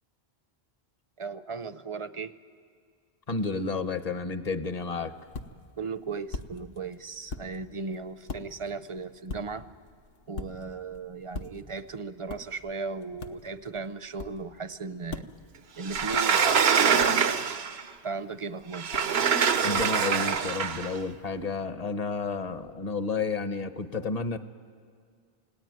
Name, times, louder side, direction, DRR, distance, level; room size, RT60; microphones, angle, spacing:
voice 1, 1.2-2.3 5.8-9.7 10.3-15.3 15.8-17.3 18.0-18.9, right 4 dB, 35° right, 13 dB, 0.7 m, -36 dB
voice 2, 3.3-5.1 19.6-24.4, left 4 dB, 40° left, 10 dB, 1.0 m, -31 dB
sound 1, 4.7-21.5, left 3 dB, 75° left, 1.3 m, -45 dB
Sliding door, 15.9-17.8 18.7-20.9, right 6 dB, 80° right, 1.1 m, -24 dB
29.0 x 18.0 x 9.3 m, 2.2 s
omnidirectional pair, 1.0 m